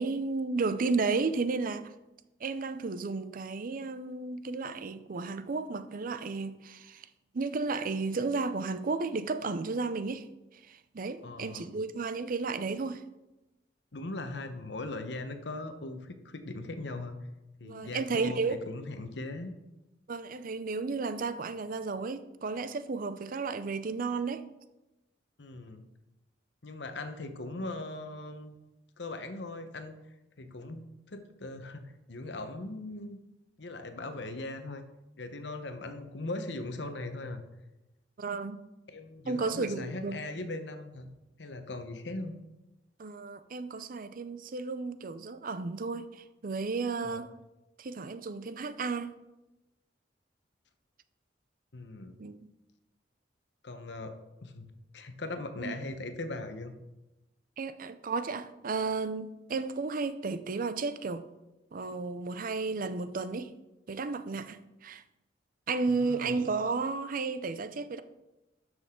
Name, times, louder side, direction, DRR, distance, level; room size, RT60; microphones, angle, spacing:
voice 1, 0.0-1.9 2.4-7.1 7.3-10.3 10.7-13.0 17.6-18.6 20.1-24.4 38.2-38.6 39.3-40.2 43.0-47.3 47.8-49.2 52.2-52.5 55.6-55.8 57.6-61.3 61.7-63.5 63.9-65.0 65.7-68.0, right 4 dB, 50° right, 0.5 m, -33 dB
voice 2, 11.2-11.7 13.9-17.2 17.6-19.5 25.4-25.8 26.6-28.6 29.0-30.0 30.4-33.2 33.6-34.8 35.2-37.4 38.9-41.1 41.4-42.3 47.0-47.2 51.7-52.2 53.6-54.1 54.4-56.7 65.9-66.4, left 2 dB, 70° left, 1.0 m, -39 dB
12.0 x 6.3 x 3.7 m
head